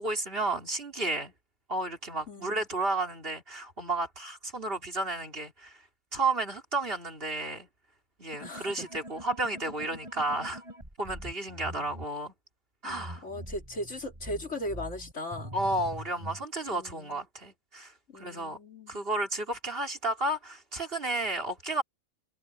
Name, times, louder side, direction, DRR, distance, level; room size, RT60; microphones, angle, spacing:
voice 1, 0.0-1.3 1.7-5.8 6.1-7.7 8.2-10.6 11.0-12.3 12.8-13.2 15.5-18.6 18.9-21.8, right 2 dB, 45° right, 3.6 m, -32 dB
voice 2, 2.3-2.7 8.4-8.9 12.8-15.5 16.7-17.2 18.1-19.0, left 1 dB, 60° left, 3.7 m, -38 dB
sound 1, 8.3-12.1 12.9-16.5, right 1 dB, 20° right, 4.9 m, -44 dB
omnidirectional pair, 1.4 m